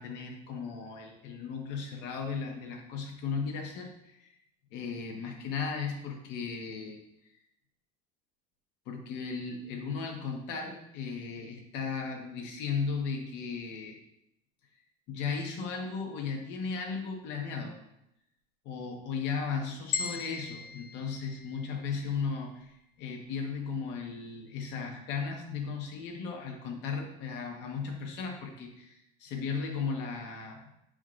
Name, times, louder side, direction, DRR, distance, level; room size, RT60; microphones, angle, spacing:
voice 1, 0.0-4.3 4.7-7.0 8.9-14.0 15.1-17.7 18.6-30.7, left 5 dB, 60° left, 2 dB, 1.3 m, -36 dB
sound 1, 19.9-22.1, left 6 dB, 85° left, 0.9 m, -38 dB
7.5 x 5.1 x 2.6 m, 0.82 s
cardioid pair, 145°, 20 cm